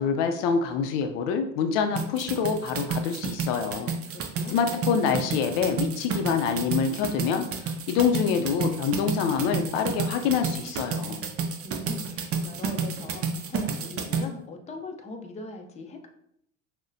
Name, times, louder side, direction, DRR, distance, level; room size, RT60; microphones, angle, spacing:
voice 1, 0.0-3.9 4.5-7.5 7.9-11.2, left 6 dB, 70° left, 6 dB, 0.6 m, -26 dB
sound 1, 2.0-14.2, right 5 dB, 35° right, 0.6 m, -30 dB
voice 2, 4.1-4.6 11.6-16.1, left 3 dB, 20° left, 3 dB, 0.6 m, -40 dB
6.1 x 2.2 x 2.6 m, 0.72 s
hypercardioid pair, 85°, 39 cm